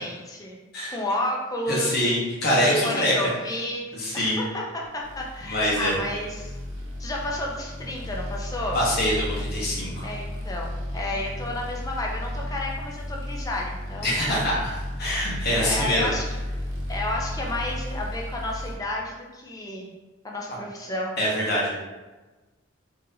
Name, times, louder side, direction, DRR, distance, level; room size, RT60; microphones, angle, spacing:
voice 1, 0.0-0.6 0.9-2.1 2.8-3.8 4.1-6.5 7.0-8.8 10.0-14.1 15.6-16.2 16.9-19.9 20.2-21.1, left 1 dB, 15° left, -1 dB, 0.5 m, -31 dB
voice 2, 1.7-3.3 3.9-4.4 5.4-5.9 8.7-10.1 14.0-16.1 21.2-21.9, equal, 50° left, -5 dB, 1.1 m, -24 dB
sound 1, 5.0-18.8, left 1 dB, 70° right, 0.7 m, -34 dB
3.8 x 2.7 x 2.7 m, 1.2 s
head